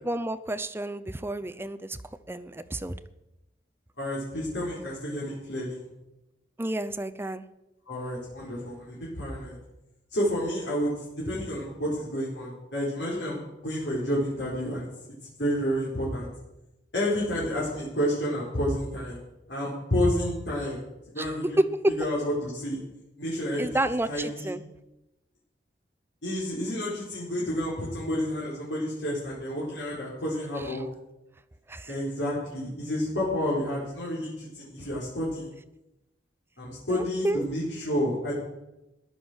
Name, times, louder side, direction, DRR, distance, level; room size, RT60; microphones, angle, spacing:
voice 1, 0.0-2.0 2.3-3.0 6.6-7.4 21.2-21.3 21.7-21.8 23.6-24.6 31.7-31.9 36.9-37.4, right 1 dB, 15° right, 10 dB, 0.6 m, -31 dB
voice 2, 4.0-5.9 7.9-9.6 10.1-14.9 15.4-16.3 16.9-19.2 19.5-20.8 21.1-21.6 22.0-22.8 23.2-23.8 24.1-24.5 26.2-30.8 31.9-35.5 36.6-38.4, equal, 70° left, -6 dB, 4.5 m, -30 dB
14.5 x 10.5 x 6.4 m, 0.94 s
head